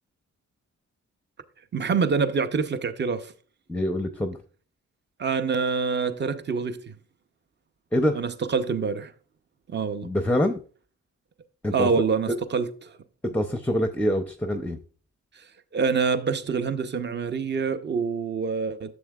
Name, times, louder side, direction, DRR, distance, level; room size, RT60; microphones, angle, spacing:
voice 1, 1.7-3.3 5.2-6.9 8.1-9.1 9.7-10.1 11.7-12.9 15.7-19.0, right 5 dB, 35° right, 0.7 m, -26 dB
voice 2, 3.7-4.4 7.9-8.2 10.0-10.6 11.6-11.9 13.2-14.8, left 1 dB, 5° left, 0.5 m, -25 dB
11.0 x 7.2 x 2.3 m
wide cardioid pair, 110°, 30 cm